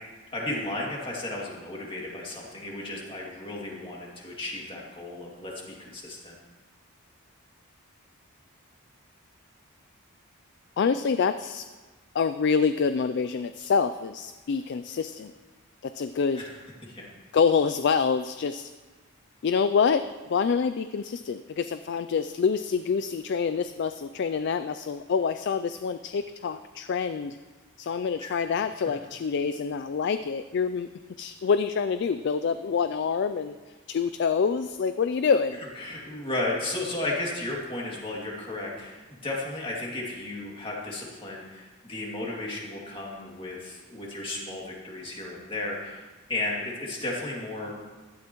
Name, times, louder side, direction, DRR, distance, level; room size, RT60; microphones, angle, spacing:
voice 1, 0.3-6.4 16.4-16.5 16.8-17.1 28.2-28.4 35.8-47.7, left 2 dB, 25° left, -3 dB, 2.4 m, -34 dB
voice 2, 10.8-11.6 12.1-15.3 15.8-16.4 17.3-18.7 19.4-27.4 27.8-30.9 31.2-33.6 33.9-35.6, left 6 dB, 50° left, 11 dB, 0.3 m, -26 dB
16.0 x 12.0 x 3.0 m, 1.3 s
head